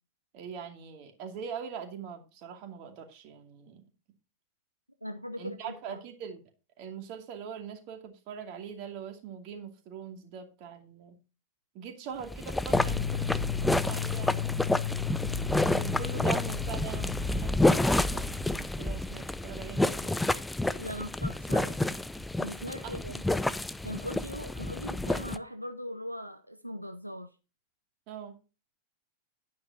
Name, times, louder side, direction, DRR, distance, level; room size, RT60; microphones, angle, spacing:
voice 1, 0.3-3.8 5.4-6.4 6.8-11.2 11.7-14.6 15.2-20.4 22.8-23.0 28.1-28.4, right 7 dB, 40° right, 2.4 m, -42 dB
voice 2, 5.0-6.0 20.8-21.8 22.4-23.2 23.8-27.3, equal, 90° right, 0.7 m, -40 dB
sound 1, 12.2-25.4, left 2 dB, 5° left, 0.5 m, -29 dB
sound 2, 12.7-18.6, left 10 dB, 65° left, 2.6 m, -34 dB
10.5 x 9.5 x 2.8 m
figure-of-eight pair, 90°, 0 cm